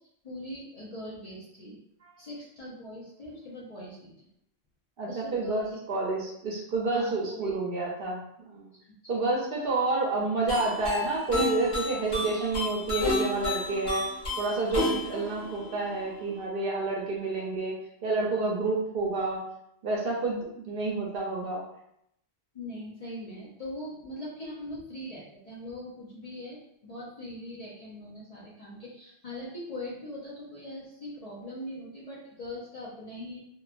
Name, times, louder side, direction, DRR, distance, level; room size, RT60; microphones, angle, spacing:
voice 1, 0.2-1.8 2.2-4.3 5.1-5.8 6.9-7.5 9.0-9.2 22.5-33.4, left 1 dB, 40° left, -6 dB, 0.6 m, -41 dB
voice 2, 5.0-8.2 8.5-8.7 9.1-14.1 14.4-17.8 18.0-19.4 19.8-21.6, right 3 dB, 60° right, -2 dB, 0.7 m, -29 dB
sound 1, 10.5-16.4, left 2 dB, 70° left, 1.4 m, -32 dB
3.0 x 2.2 x 2.4 m, 0.74 s
omnidirectional pair, 1.1 m